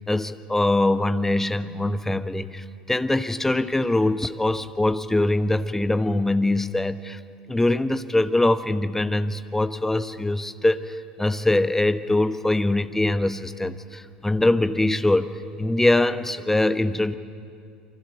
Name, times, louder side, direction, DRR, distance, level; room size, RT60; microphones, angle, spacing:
voice 1, 0.1-7.2 7.5-15.3 15.6-17.1, left 2 dB, 10° left, 11 dB, 1.2 m, -23 dB
28.5 x 25.0 x 7.2 m, 2.3 s
figure-of-eight pair, 70°, 5 cm